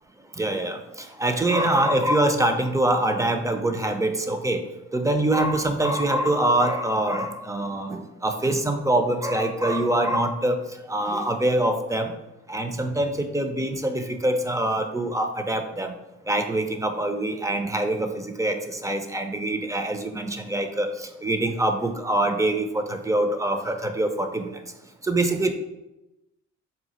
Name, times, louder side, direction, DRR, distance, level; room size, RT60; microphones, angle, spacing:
voice 1, 0.4-4.6 4.9-10.6 10.9-12.1 12.5-15.9 16.3-24.6 25.0-25.5, right 1 dB, 10° right, 6 dB, 0.4 m, -24 dB
3.9 x 2.4 x 4.1 m, 0.96 s
cardioid pair, 90°, 30 cm